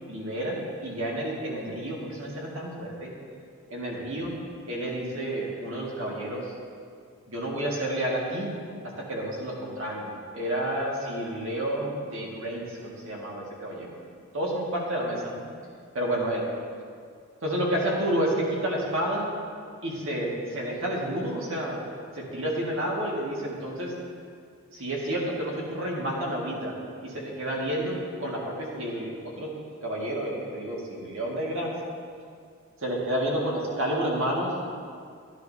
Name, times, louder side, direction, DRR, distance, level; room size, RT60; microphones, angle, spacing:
voice 1, 0.1-3.1 3.7-4.4 4.7-6.5 7.3-8.5 9.1-13.9 14.3-15.4 15.9-16.4 17.4-19.3 19.8-21.8 22.1-23.9 24.7-26.8 27.0-29.5 29.8-31.8 32.8-34.5, right 1 dB, 60° right, -3 dB, 1.9 m, -30 dB
11.5 x 10.5 x 2.8 m, 2.2 s
head